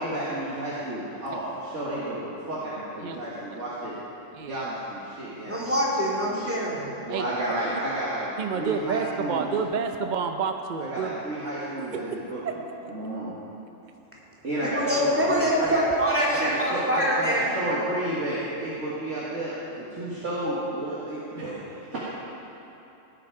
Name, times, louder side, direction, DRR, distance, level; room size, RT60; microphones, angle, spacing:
voice 1, 0.0-4.0 4.5-5.6 7.0-9.5 10.8-12.4 12.9-13.3 14.4-15.8 16.3-22.0, right 1 dB, 65° right, -9 dB, 2.2 m, -31 dB
voice 2, 4.3-4.6 7.1-7.2 8.4-11.1 12.1-12.2 12.4-12.5, right 6 dB, 45° right, 5 dB, 0.7 m, -29 dB
voice 3, 5.5-6.9 14.6-17.5, equal, 10° right, -6 dB, 2.5 m, -24 dB
17.0 x 8.8 x 4.9 m, 2.9 s
omnidirectional pair, 1.4 m